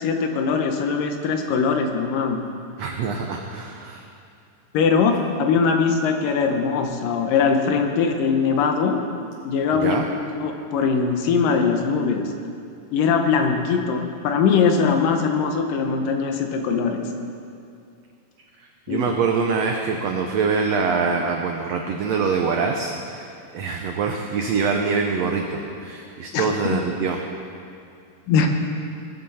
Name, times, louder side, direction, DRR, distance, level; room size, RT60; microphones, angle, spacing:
voice 1, 0.0-2.4 4.7-9.0 9.5-12.3 12.9-17.1 18.9-19.1 26.3-26.8 28.3-28.5, left 5 dB, 80° left, 4 dB, 2.5 m, -21 dB
voice 2, 2.8-4.0 9.7-10.1 18.9-23.3 23.5-27.2, right 5 dB, 90° right, 2 dB, 1.4 m, -24 dB
21.0 x 7.8 x 4.2 m, 2.5 s
omnidirectional pair, 4.0 m